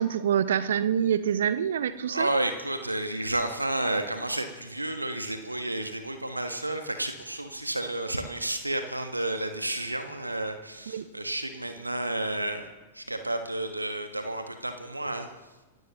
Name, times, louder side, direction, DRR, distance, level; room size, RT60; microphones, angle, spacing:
voice 1, 0.0-2.3 10.9-11.1, right 9 dB, 65° right, 14 dB, 0.7 m, -26 dB
voice 2, 2.1-12.7 12.9-15.3, right 1 dB, 85° right, 6 dB, 1.3 m, -31 dB
28.0 x 16.0 x 3.0 m, 1.1 s
figure-of-eight pair, 90°, 0 cm